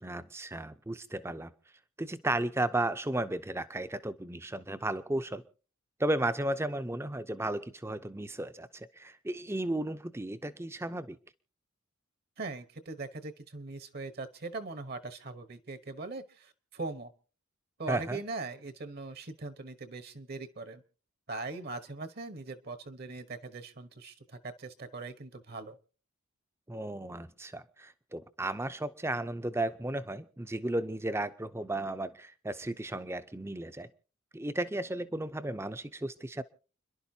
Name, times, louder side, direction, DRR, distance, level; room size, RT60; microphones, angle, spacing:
voice 1, 0.0-1.5 2.0-5.4 6.0-11.2 17.9-18.2 26.7-33.9 34.3-36.4, right 1 dB, 10° right, 12 dB, 0.6 m, -34 dB
voice 2, 12.4-17.1 17.8-20.8 21.3-25.8, right 3 dB, 45° right, 11 dB, 1.1 m, -41 dB
30.0 x 11.5 x 2.8 m, 0.38 s
head